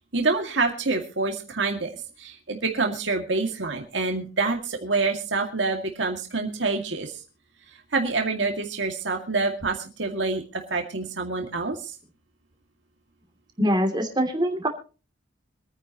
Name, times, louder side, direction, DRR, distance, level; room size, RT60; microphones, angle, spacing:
voice 1, 0.1-7.2 7.9-11.9, right 3 dB, 80° right, 2 dB, 2.2 m, -27 dB
voice 2, 13.6-14.7, equal, 25° right, 5 dB, 2.8 m, -23 dB
25.5 x 9.9 x 3.0 m, 0.34 s
head